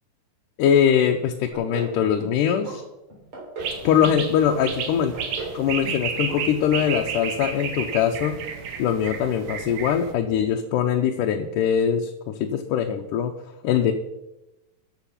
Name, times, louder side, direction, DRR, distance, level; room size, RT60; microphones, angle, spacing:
voice 1, 0.6-2.8 3.8-5.2 5.5-8.4 8.8-13.3 13.6-13.9, left 8 dB, 90° left, 3 dB, 2.4 m, -22 dB
sound 1, 1.5-1.9 2.2-2.8 3.1-3.8 4.0-4.6 4.9-5.6 5.8-6.0 6.3-6.4 6.7-6.8, right 3 dB, 40° right, 4.4 m, -35 dB
sound 2, 3.6-10.1, right 6 dB, 75° right, 2.7 m, -32 dB
13.0 x 7.5 x 5.7 m, 0.95 s
omnidirectional pair, 3.6 m